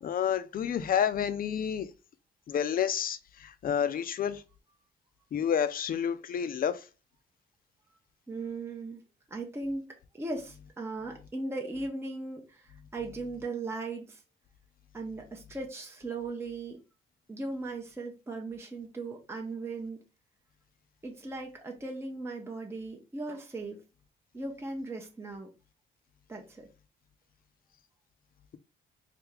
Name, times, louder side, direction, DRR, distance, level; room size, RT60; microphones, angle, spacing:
voice 1, 0.0-1.9 2.5-4.4 5.3-6.8, left 8 dB, 45° left, 0.5 m, -29 dB
voice 2, 8.3-9.0 9.3-14.2 14.9-16.8 17.3-20.0 21.0-23.8 24.3-25.5 26.3-26.7, right 3 dB, 10° right, 0.7 m, -38 dB
3.4 x 2.7 x 3.3 m
cardioid pair, 90°, 20 cm